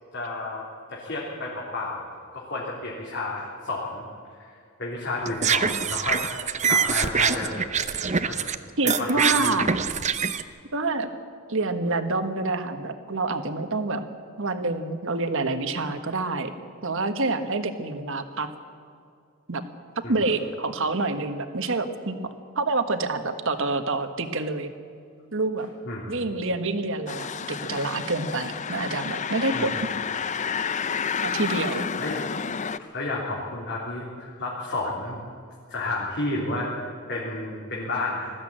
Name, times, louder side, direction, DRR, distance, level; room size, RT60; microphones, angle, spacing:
voice 1, 0.1-4.5 4.8-7.6 8.1-8.5 8.8-9.6 20.0-20.1 25.8-26.1 29.5-29.7 32.0-32.2 32.8-35.2 35.7-36.7 37.1-38.3, left 2 dB, 55° left, -5 dB, 3.5 m, -31 dB
sound 1, 5.2-8.6 8.9-10.4, right 6 dB, 30° right, 0.7 m, -24 dB
voice 2, 8.8-9.8 10.7-11.1 11.5-14.0 14.4-16.5 16.8-18.5 19.5-19.6 20.1-22.2 22.5-24.7 25.3-25.7 26.1-29.8 31.2-31.9, right 3 dB, 60° right, 8 dB, 1.5 m, -27 dB
sound 2, 27.1-32.8, left 6 dB, 35° left, 0.5 m, -30 dB
20.5 x 14.5 x 8.9 m, 2.4 s
head